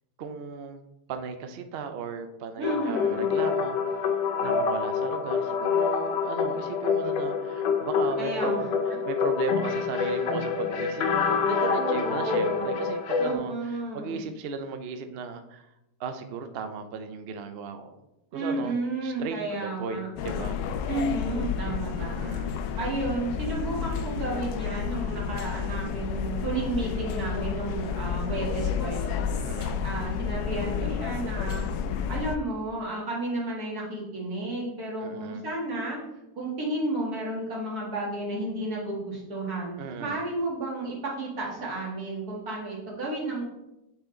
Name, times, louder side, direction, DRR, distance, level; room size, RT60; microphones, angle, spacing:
voice 1, 0.2-0.8 1.1-4.1 4.4-8.6 9.1-15.7 16.0-18.0 18.3-18.8 19.0-20.6 22.0-22.6 29.4-29.8 35.0-35.4 39.8-40.2, right 5 dB, 85° right, 7 dB, 0.5 m, -36 dB
sound 1, 2.6-13.3, left 6 dB, 90° left, 1.4 m, -27 dB
voice 2, 2.6-3.4 8.2-8.6 11.7-12.8 13.2-14.2 18.3-20.1 20.9-29.3 29.8-31.7 32.1-36.0 36.4-39.7 40.0-43.5, right 2 dB, 60° right, -4 dB, 2.3 m, -32 dB
sound 2, 20.1-32.4, left 7 dB, 75° left, 1.1 m, -31 dB
8.2 x 4.2 x 3.8 m, 0.90 s
omnidirectional pair, 1.8 m